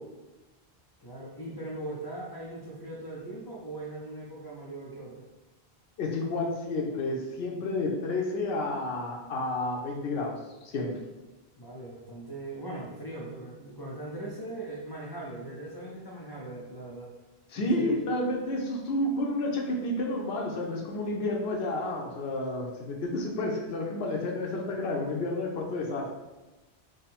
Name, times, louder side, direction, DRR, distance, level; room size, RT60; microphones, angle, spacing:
voice 1, 1.0-5.3 11.5-17.1 17.6-18.0, right 2 dB, 30° left, -5 dB, 0.5 m, -40 dB
voice 2, 6.0-10.9 17.5-26.1, left 2 dB, 80° left, -1 dB, 0.9 m, -30 dB
3.7 x 2.0 x 4.1 m, 1.1 s
omnidirectional pair, 1.0 m